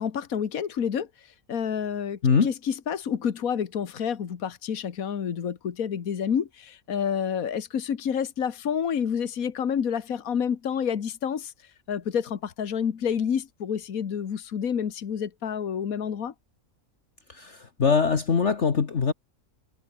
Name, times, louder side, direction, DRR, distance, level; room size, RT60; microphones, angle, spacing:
voice 1, 0.0-16.3, left 7 dB, 75° left, 1.8 m, -29 dB
voice 2, 17.3-19.1, left 5 dB, 55° left, 1.8 m, -22 dB
omnidirectional pair, 1.5 m